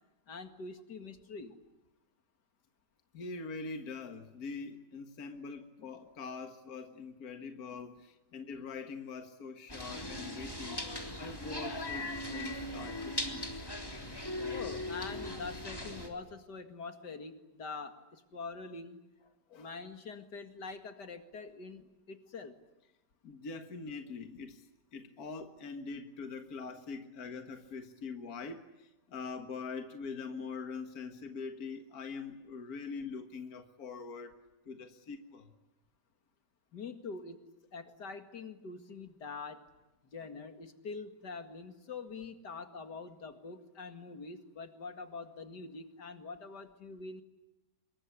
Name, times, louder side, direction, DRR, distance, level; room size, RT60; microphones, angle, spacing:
voice 1, 0.3-1.6 14.5-19.0 19.6-22.6 36.7-37.4 37.7-39.6 40.1-47.2, left 4 dB, 75° left, 8 dB, 2.6 m, -44 dB
voice 2, 3.1-13.6 19.5-19.8 23.2-34.3 34.7-35.5, left 4 dB, 60° left, 6 dB, 2.0 m, -43 dB
sound 1, 9.7-16.1, left 1 dB, 15° left, 3.6 m, -39 dB
26.0 x 22.5 x 9.8 m, 1.0 s
omnidirectional pair, 1.8 m